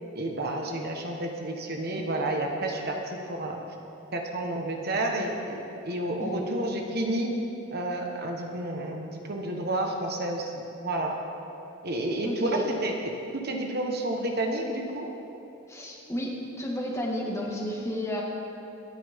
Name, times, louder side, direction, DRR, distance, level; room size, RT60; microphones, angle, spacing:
voice 1, 0.1-3.6 4.1-5.6 5.8-7.3 7.7-11.2 11.8-13.0 13.3-15.1, right 1 dB, 50° right, 2 dB, 1.3 m, -30 dB
voice 2, 12.2-12.6 15.7-16.3 16.6-18.2, equal, 15° left, -2 dB, 1.8 m, -31 dB
27.0 x 9.2 x 3.7 m, 2.9 s
head